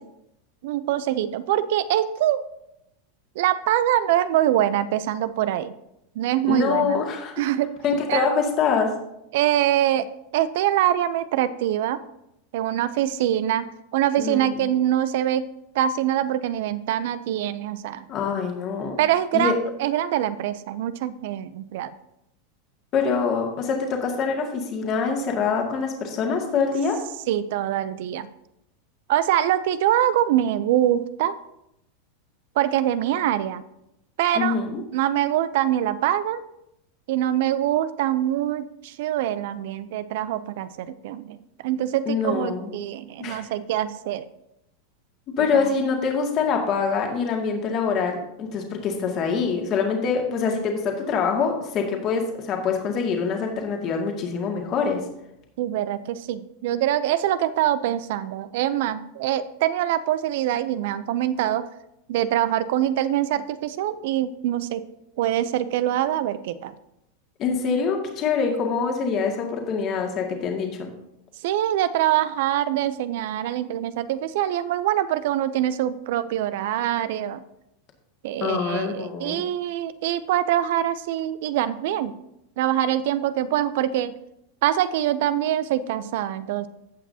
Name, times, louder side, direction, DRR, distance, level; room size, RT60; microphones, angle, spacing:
voice 1, 0.6-2.4 3.4-5.7 6.2-7.0 7.4-7.7 8.1-8.3 9.3-10.1 10.3-12.0 12.5-13.7 13.9-15.4 15.7-18.1 19.0-21.9 27.3-28.3 29.1-31.3 32.6-33.6 34.2-34.6 34.9-36.4 37.1-41.4 41.6-44.3 45.5-45.7 55.6-61.7 62.1-64.9 65.2-66.7 71.4-77.4 78.2-82.2 82.6-84.1 84.6-86.7, right 12 dB, 70° right, 14 dB, 0.5 m, -24 dB
voice 2, 6.5-7.3 7.8-8.9 14.2-14.7 18.1-19.0 19.3-19.5 22.9-27.0 34.3-34.8 42.1-42.7 43.2-43.5 45.4-55.0 67.4-70.9 78.4-79.4, left 5 dB, 40° left, 2 dB, 2.0 m, -25 dB
15.5 x 6.0 x 2.8 m, 0.83 s
hypercardioid pair, 115°, 0 cm